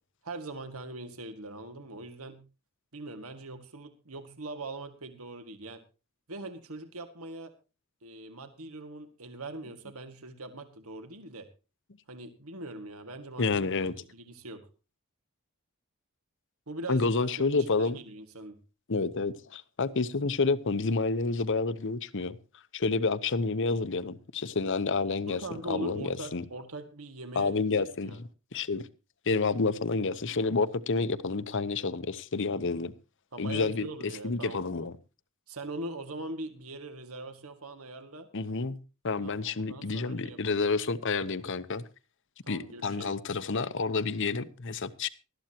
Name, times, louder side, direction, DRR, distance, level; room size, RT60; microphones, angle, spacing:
voice 1, 0.2-2.4 2.9-5.8 6.3-7.5 8.0-11.5 12.1-13.7 14.1-14.7 16.7-17.3 17.7-18.6 25.3-27.5 28.0-28.2 33.3-34.6 35.5-38.3 39.2-40.6 42.4-43.2, right 2 dB, 85° right, 2.0 m, -41 dB
voice 2, 13.4-13.9 16.9-18.0 18.9-22.4 22.7-25.4 25.7-26.4 27.3-28.1 28.5-28.9 29.3-32.9 33.4-35.0 38.3-38.8 39.0-41.8 42.5-45.1, left 4 dB, 60° left, 0.9 m, -29 dB
19.5 x 13.0 x 2.9 m
head